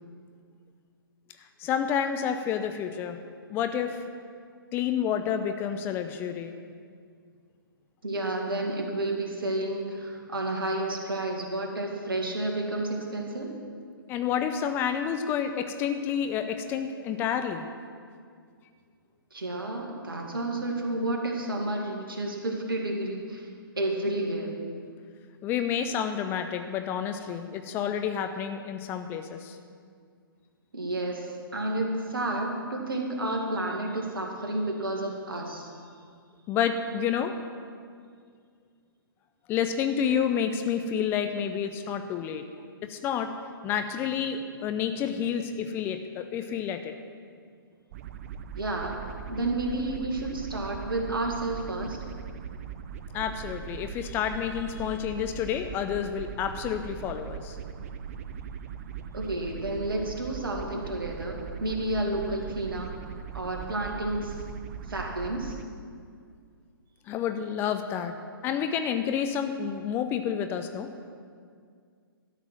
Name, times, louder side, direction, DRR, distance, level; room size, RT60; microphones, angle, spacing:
voice 1, 1.4-3.2 3.5-4.0 4.7-6.5 14.1-17.7 25.4-29.6 36.5-37.4 39.5-42.4 42.8-43.3 43.6-46.9 53.1-57.6 67.1-68.1 68.4-70.9, left 8 dB, 15° left, 7 dB, 0.5 m, -29 dB
voice 2, 8.0-13.6 19.3-23.5 23.8-24.6 30.7-35.7 48.6-52.0 59.1-62.9 63.3-64.4 64.9-65.6, right 2 dB, 70° right, 1 dB, 2.1 m, -31 dB
sound 1, 47.9-65.6, right 7 dB, 40° right, 0.6 m, -40 dB
12.5 x 6.0 x 7.5 m, 2.2 s
figure-of-eight pair, 125°, 12 cm